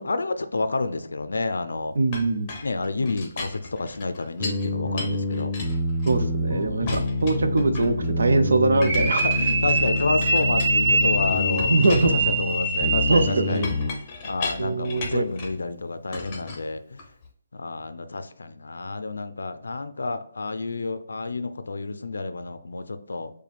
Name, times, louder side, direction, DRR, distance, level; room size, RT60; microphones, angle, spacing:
voice 1, 0.0-1.9 2.6-5.5 6.5-7.0 9.3-13.7 14.2-17.0 17.5-23.3, left 3 dB, 90° left, 10 dB, 0.4 m, -30 dB
voice 2, 2.0-2.5 6.1-9.2 11.7-12.1 13.1-13.7 14.6-15.2, right 3 dB, 75° right, 7 dB, 0.6 m, -22 dB
Chink clink, 2.1-4.7 5.0-6.5 6.9-8.1 8.8-11.1 11.6-15.6 16.1-17.3, left 4 dB, 25° left, 0.8 m, -37 dB
sound 1, 4.4-13.9, left 1 dB, ahead, 1.1 m, -27 dB
sound 2, 8.8-13.5, right 2 dB, 25° right, 0.7 m, -24 dB
4.9 x 2.2 x 3.4 m, 0.65 s
hypercardioid pair, 160°, 0 cm